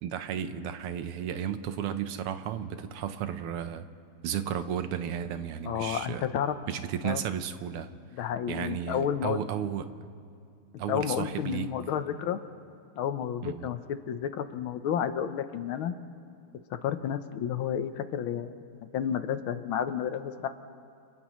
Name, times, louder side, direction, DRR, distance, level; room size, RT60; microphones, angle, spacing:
voice 1, 0.0-3.9 4.2-6.3 6.7-7.9 8.5-9.9 10.8-11.7 13.4-13.7, right 9 dB, 85° right, 10 dB, 1.8 m, -33 dB
voice 2, 5.6-6.6 7.0-7.2 8.1-9.4 10.9-12.4 13.0-15.9 16.7-18.6 18.9-20.5, left 9 dB, 70° left, 10 dB, 1.6 m, -31 dB
29.5 x 29.0 x 3.1 m, 2.3 s
omnidirectional pair, 2.4 m